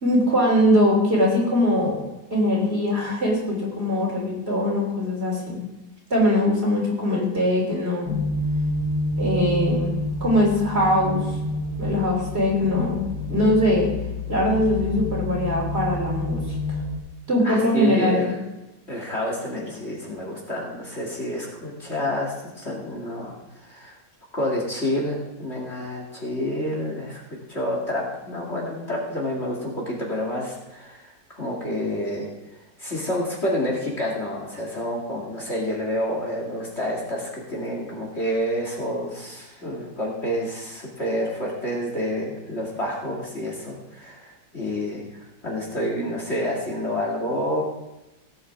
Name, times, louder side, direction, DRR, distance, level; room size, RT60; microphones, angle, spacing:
voice 1, 0.0-2.0 2.3-5.6 6.1-8.1 9.2-9.9 10.2-11.2 11.8-13.0 13.3-13.9 14.3-16.4 17.3-18.3, left 1 dB, 35° right, -3 dB, 3.7 m, -21 dB
sound 1, 8.0-17.0, left 2 dB, 15° right, 3.1 m, -28 dB
voice 2, 17.4-18.4 18.9-23.3 23.6-24.0 24.3-27.2 27.5-32.3 32.8-45.0 45.4-47.6, left 1 dB, 35° left, -2 dB, 2.5 m, -28 dB
17.5 x 8.9 x 3.6 m, 0.98 s
omnidirectional pair, 1.9 m